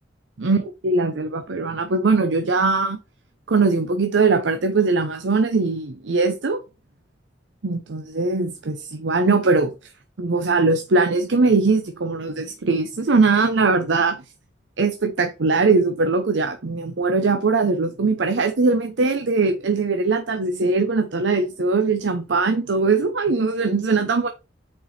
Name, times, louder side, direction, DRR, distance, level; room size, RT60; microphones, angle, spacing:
voice 1, 0.4-3.0 3.5-6.6 7.6-9.7 10.2-14.2 14.8-24.3, right 3 dB, 75° right, 0.7 m, -21 dB
5.6 x 4.6 x 4.2 m
head